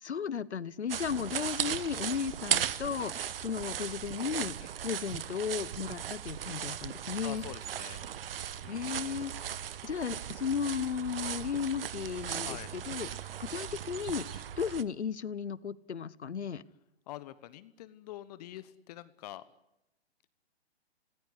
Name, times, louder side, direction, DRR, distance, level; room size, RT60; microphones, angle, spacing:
voice 1, 0.0-7.4 8.7-9.3 9.8-13.1 13.4-16.6, left 7 dB, 80° left, 19 dB, 1.2 m, -35 dB
sound 1, 0.9-14.8, right 9 dB, 60° right, 1.3 m, -37 dB
voice 2, 7.2-8.0 8.6-9.1 12.5-12.7 17.1-19.4, left 14 dB, 35° left, 15 dB, 1.1 m, -45 dB
27.5 x 19.0 x 9.7 m, 0.89 s
hypercardioid pair, 135°, 33 cm